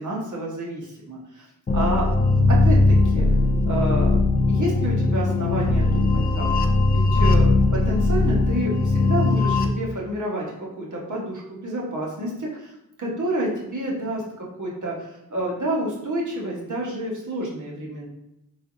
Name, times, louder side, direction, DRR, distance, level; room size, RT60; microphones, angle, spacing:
voice 1, 0.0-1.5 1.7-2.1 2.5-3.3 3.7-4.1 4.5-6.5 6.9-10.5 10.8-12.7 13.0-18.1, right 1 dB, 55° right, -4 dB, 1.3 m, -29 dB
sound 1, 1.7-9.7, left 2 dB, 25° left, 0.4 m, -19 dB
3.5 x 3.4 x 2.6 m, 0.86 s
cardioid pair, 55°, 37 cm